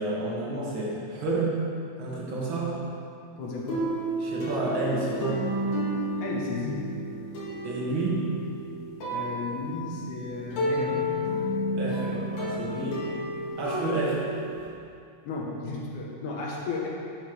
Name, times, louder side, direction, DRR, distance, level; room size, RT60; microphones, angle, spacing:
voice 1, 0.0-1.7 2.0-2.8 4.2-5.5 7.6-8.3 11.7-14.3, right 2 dB, 65° right, -6 dB, 1.2 m, -30 dB
voice 2, 3.4-3.9 6.2-6.9 9.1-11.0 12.0-12.2 15.2-16.9, left 3 dB, 80° left, -3 dB, 1.7 m, -34 dB
sound 1, 3.4-14.7, equal, 60° left, 3.4 m, -31 dB
8.3 x 7.1 x 6.9 m, 2.5 s
omnidirectional pair, 5.2 m